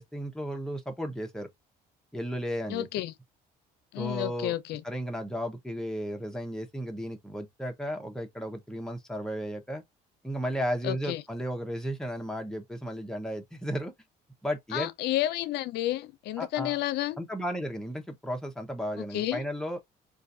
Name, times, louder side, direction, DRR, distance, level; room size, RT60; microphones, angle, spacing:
voice 1, 0.0-1.5 2.1-2.9 4.0-4.5 4.8-9.8 10.2-13.9 14.4-14.9 16.4-16.8 17.2-19.8, equal, 5° left, 0.9 m, -34 dB
voice 2, 2.7-3.1 3.9-4.8 10.8-11.2 14.7-17.2 19.0-19.4, left 14 dB, 75° left, 0.5 m, -31 dB
4.0 x 2.5 x 2.6 m
cardioid pair, 110°, 17 cm